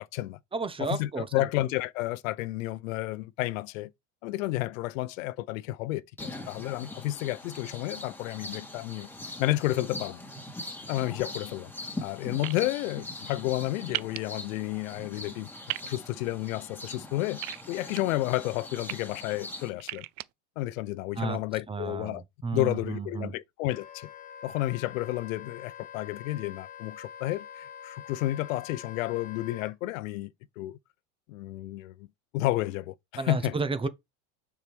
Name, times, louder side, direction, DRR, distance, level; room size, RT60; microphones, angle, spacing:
voice 1, 0.0-0.4 0.8-3.9 4.2-9.1 9.4-10.2 10.9-11.7 12.0-15.5 15.8-17.4 17.7-20.0 20.6-22.2 22.5-24.1 24.4-30.3 30.6-30.8 31.3-32.1 32.3-33.6, left 16 dB, 85° left, 0.6 m, -31 dB
voice 2, 0.5-1.3 21.2-21.4 21.7-23.3 33.2-33.9, right 4 dB, 15° right, 0.8 m, -32 dB
sound 1, 6.2-19.7, left 2 dB, 5° left, 2.2 m, -42 dB
sound 2, 12.4-12.6 13.9-14.2 15.7-15.9 17.4-18.0 18.6-18.9 19.8-20.2, right 21 dB, 50° right, 0.5 m, -34 dB
Wind instrument woodwind instrument, 23.7-29.7, left 9 dB, 20° left, 1.1 m, -45 dB
6.7 x 4.8 x 3.5 m
supercardioid pair, 125°, 38 cm